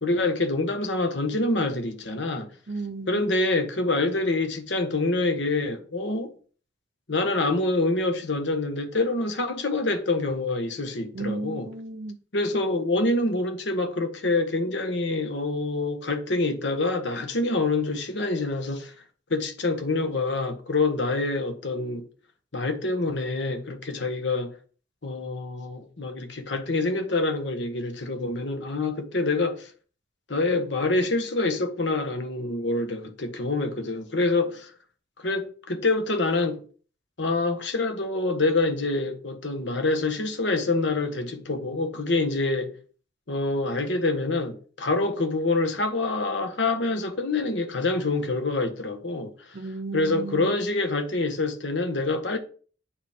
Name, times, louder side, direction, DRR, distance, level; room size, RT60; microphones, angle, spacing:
voice 1, 0.0-2.5 3.1-6.3 7.1-11.7 12.3-18.9 19.3-22.0 22.5-24.5 25.0-29.7 30.3-34.7 35.2-36.6 37.2-42.7 43.3-49.3 49.9-52.4, left 2 dB, 70° left, 1.2 m, -26 dB
voice 2, 2.7-3.2 11.1-12.2 49.5-50.6, right 3 dB, 55° right, 0.6 m, -34 dB
8.9 x 4.7 x 3.6 m
head